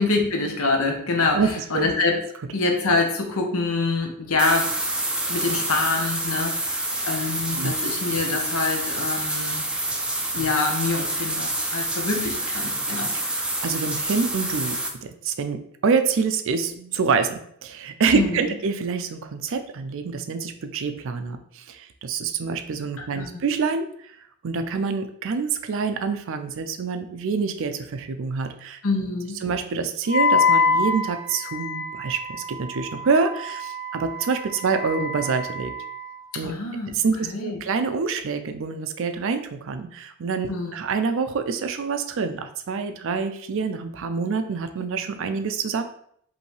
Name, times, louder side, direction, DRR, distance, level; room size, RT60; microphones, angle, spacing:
voice 1, 0.0-2.2 2.5-4.8 5.3-9.6 10.3-13.4 18.1-18.4 23.0-23.4 28.8-29.4 36.4-36.9 37.2-37.6 40.5-40.7, left 3 dB, 75° left, 3 dB, 0.9 m, -25 dB
voice 2, 1.3-1.8 6.9-7.1 7.5-7.7 13.1-13.2 13.6-24.2 24.4-28.8 29.4-32.2 32.5-35.7 36.4-36.5 36.9-37.2 37.4-45.8, right 5 dB, 60° right, 8 dB, 0.4 m, -26 dB
sound 1, 4.4-14.9, right 1 dB, 5° right, 0.4 m, -27 dB
Wind instrument woodwind instrument, 30.1-36.2, left 3 dB, 40° left, 0.6 m, -26 dB
5.2 x 2.8 x 3.2 m, 0.66 s
head